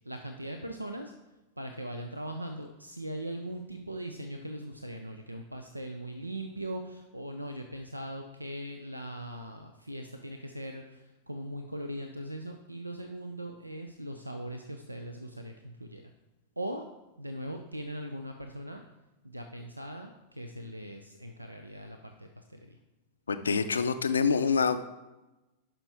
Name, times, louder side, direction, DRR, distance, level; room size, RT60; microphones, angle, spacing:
voice 1, 0.0-1.1 1.6-16.1 16.6-16.9 17.2-18.8 19.2-22.8, right 1 dB, 85° right, 5 dB, 0.5 m, -40 dB
voice 2, 23.3-24.9, left 5 dB, 75° left, 11 dB, 0.5 m, -26 dB
11.0 x 5.8 x 3.5 m, 1.0 s
figure-of-eight pair, 90°, 0 cm